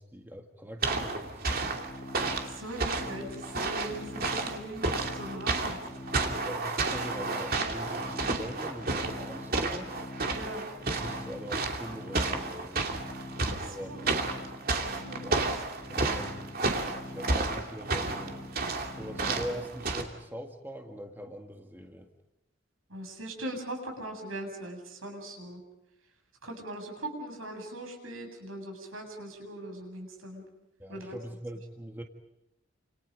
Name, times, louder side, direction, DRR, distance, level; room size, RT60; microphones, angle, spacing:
voice 1, 0.0-1.4 6.3-10.0 10.8-12.9 13.4-14.0 15.2-15.4 15.9-16.7 17.1-18.5 18.9-22.1 30.8-32.0, equal, 10° right, 3 dB, 1.9 m, -42 dB
sound 1, 0.8-20.0, right 3 dB, 45° right, 2.8 m, -32 dB
sound 2, 1.5-19.7, left 1 dB, 30° left, 1.6 m, -45 dB
voice 2, 2.3-5.8 10.3-10.7 13.6-14.1 14.9-15.5 22.9-25.6 26.4-30.4 30.9-31.2, right 1 dB, 85° right, 3 dB, 8.0 m, -40 dB
29.5 x 28.0 x 5.2 m, 0.87 s
head